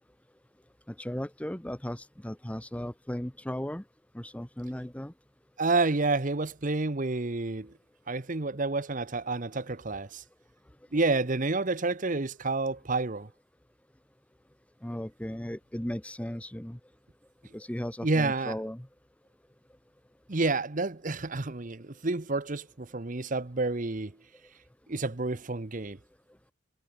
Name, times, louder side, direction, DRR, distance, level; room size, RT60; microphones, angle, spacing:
voice 1, 0.9-3.8 4.1-5.1 14.8-16.8 17.5-18.9, equal, 5° left, 0.8 m, -36 dB
voice 2, 5.6-7.7 8.1-10.2 10.9-13.3 18.0-18.6 20.3-24.1 24.9-26.0, right 3 dB, 40° right, 0.9 m, -29 dB
head